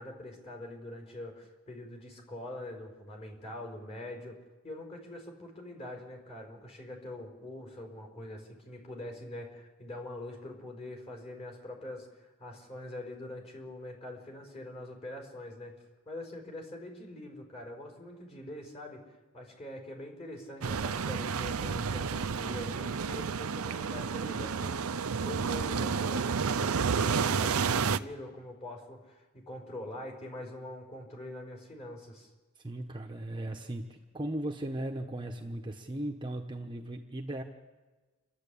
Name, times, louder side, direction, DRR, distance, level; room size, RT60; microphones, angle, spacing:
voice 1, 0.0-4.4 4.6-15.7 16.0-19.0 19.3-32.3, left 1 dB, 30° left, 1 dB, 5.0 m, -44 dB
sound 1, 20.6-28.0, right 5 dB, 75° right, 0.6 m, -30 dB
voice 2, 32.6-37.4, right 1 dB, 20° right, 3 dB, 1.1 m, -37 dB
29.0 x 12.0 x 8.6 m, 1.2 s
head